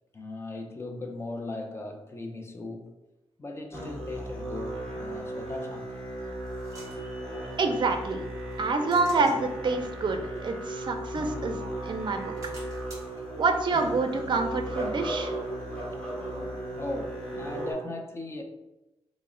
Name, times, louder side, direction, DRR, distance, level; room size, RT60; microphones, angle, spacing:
voice 1, 0.1-2.9 3.4-5.9 16.8-18.4, left 2 dB, 25° left, 0.5 m, -38 dB
Musical instrument, 3.7-17.7, right 1 dB, 10° left, 1.2 m, -36 dB
sound 1, 6.4-8.0 8.5-11.6 12.0-15.5, right 1 dB, 30° right, 1.0 m, -52 dB
voice 2, 7.6-8.2 8.6-12.5 13.4-15.3, right 3 dB, 45° right, 0.4 m, -27 dB
3.9 x 2.0 x 3.7 m
wide cardioid pair, 105°, 11 cm